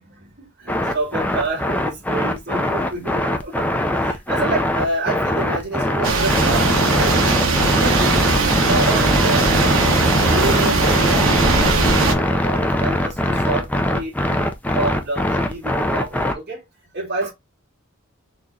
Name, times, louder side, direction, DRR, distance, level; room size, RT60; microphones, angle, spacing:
voice 1, 0.0-7.4 7.8-14.4 14.7-16.6 16.9-17.3, right 2 dB, 50° right, 1.9 m, -28 dB
sound 1, 0.7-16.3, left 1 dB, 5° left, 0.4 m, -21 dB
sound 2, 6.0-12.1, right 3 dB, 65° right, 0.9 m, -19 dB
4.1 x 2.9 x 2.6 m
head